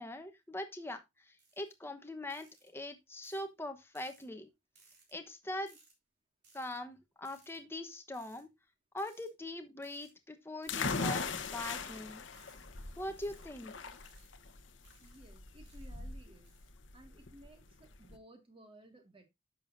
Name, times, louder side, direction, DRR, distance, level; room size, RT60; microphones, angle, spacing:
voice 1, 0.0-4.5 5.1-5.8 6.5-8.5 8.9-12.3 13.0-13.7, left 1 dB, 10° left, 1.1 m, -42 dB
sound 1, 1.4-1.7 2.3-2.7 3.2-3.5 3.9-4.2 4.7-5.1 5.7-5.9 6.4-6.8 7.2-7.6 8.1-8.4 9.0-9.3 9.8-10.1 10.6-10.9 11.4-11.8 12.3-12.6 13.2-13.5 14.0-14.3 14.8-15.2 15.7-15.9 16.4-16.7, right 4 dB, 55° right, 3.8 m, -64 dB
sound 2, 10.7-18.2, left 4 dB, 70° left, 1.1 m, -40 dB
voice 2, 15.0-16.5 16.9-19.2, right 1 dB, 25° right, 2.0 m, -57 dB
10.5 x 7.0 x 2.6 m
head